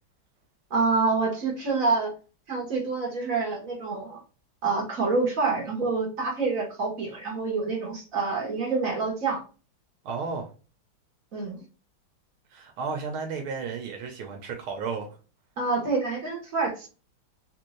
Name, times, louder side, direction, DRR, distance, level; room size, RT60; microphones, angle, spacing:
voice 1, 0.7-2.1 2.5-4.2 4.6-9.4 11.3-11.6 15.6-16.9, right 4 dB, 45° right, 1.5 m, -27 dB
voice 2, 10.0-10.5 12.5-15.1, right 5 dB, 80° right, 1.6 m, -33 dB
4.0 x 2.6 x 3.0 m
omnidirectional pair, 2.3 m